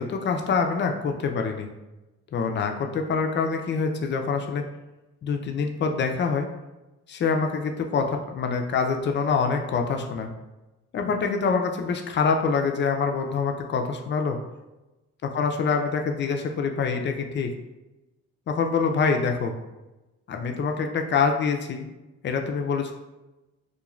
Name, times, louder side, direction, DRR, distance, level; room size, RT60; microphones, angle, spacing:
voice 1, 0.0-1.7 2.3-4.7 5.2-6.5 7.1-10.3 10.9-14.4 15.3-17.5 18.5-19.5 20.3-21.9 22.2-22.9, left 5 dB, 40° left, 4 dB, 0.4 m, -25 dB
2.4 x 2.2 x 3.0 m, 1.0 s
cardioid pair, 90°, 30 cm